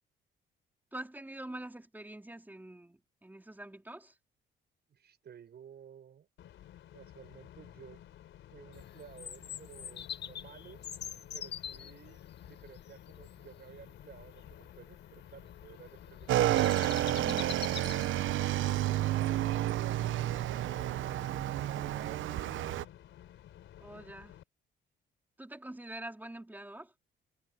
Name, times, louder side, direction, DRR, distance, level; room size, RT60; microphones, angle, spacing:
voice 1, 0.9-4.1 17.2-17.4 23.8-24.4 25.4-26.9, right 1 dB, 10° right, 4.3 m, -45 dB
voice 2, 4.9-6.3 6.9-8.0 8.5-10.9 11.3-16.7 18.4-22.9, right 8 dB, 55° right, 5.6 m, -54 dB
sound 1, 6.4-24.4, left 11 dB, 75° left, 4.0 m, -53 dB
Bird vocalization bird call bird song, 8.7-18.4, left 9 dB, 60° left, 1.8 m, -46 dB
Motorcycle / Engine, 16.3-22.8, right 14 dB, 75° right, 0.9 m, -30 dB
cardioid pair, 90°, 20 cm